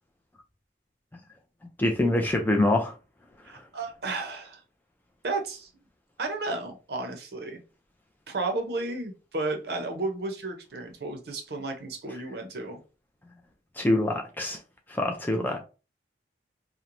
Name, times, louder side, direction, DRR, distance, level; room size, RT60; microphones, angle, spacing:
voice 1, 1.8-2.9 3.5-3.6 13.8-14.6 14.9-15.6, left 1 dB, 10° left, 0.3 m, -25 dB
voice 2, 3.4-4.6 5.2-5.7 6.2-7.6 8.3-12.8, right 2 dB, 55° right, 0.6 m, -33 dB
2.9 x 2.0 x 2.5 m
head